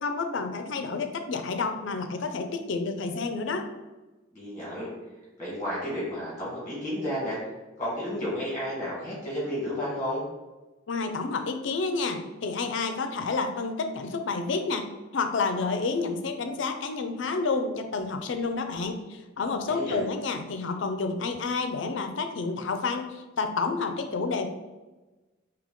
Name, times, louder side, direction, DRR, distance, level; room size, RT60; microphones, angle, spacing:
voice 1, 0.0-3.7 10.9-14.8 15.1-24.5, left 4 dB, 70° left, 6 dB, 0.4 m, -29 dB
voice 2, 4.3-4.9 5.4-7.4 7.8-10.2 19.7-20.0, equal, 15° left, -8 dB, 1.4 m, -32 dB
3.7 x 2.8 x 3.6 m, 1.1 s
head